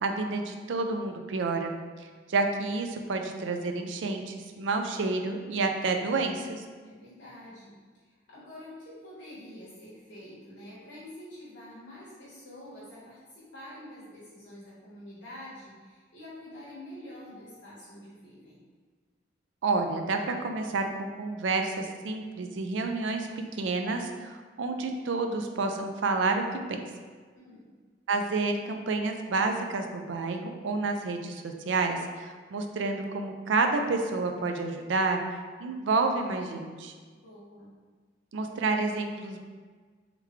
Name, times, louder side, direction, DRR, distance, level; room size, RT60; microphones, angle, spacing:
voice 1, 0.0-6.6 19.6-23.3 23.6-26.4 26.7-26.8 28.1-35.2 35.6-36.9 38.3-39.4, right 3 dB, 85° right, 5 dB, 0.4 m, -29 dB
voice 2, 6.8-18.6 27.3-27.7 37.2-37.7, left 1 dB, 80° left, -10 dB, 1.3 m, -47 dB
3.7 x 3.4 x 3.1 m, 1.5 s
head